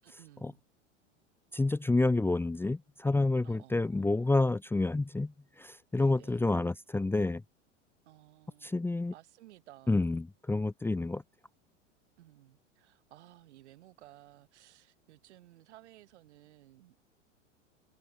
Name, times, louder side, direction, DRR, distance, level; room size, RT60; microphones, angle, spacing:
voice 1, 0.0-0.6 3.4-4.4 5.9-6.4 8.0-8.7 9.1-10.2 12.2-17.0, right 15 dB, 65° right, 7.4 m, -57 dB
voice 2, 1.5-7.4 8.6-9.1 9.9-11.2, left 2 dB, 5° left, 0.9 m, -29 dB
figure-of-eight pair, 90°, 37 cm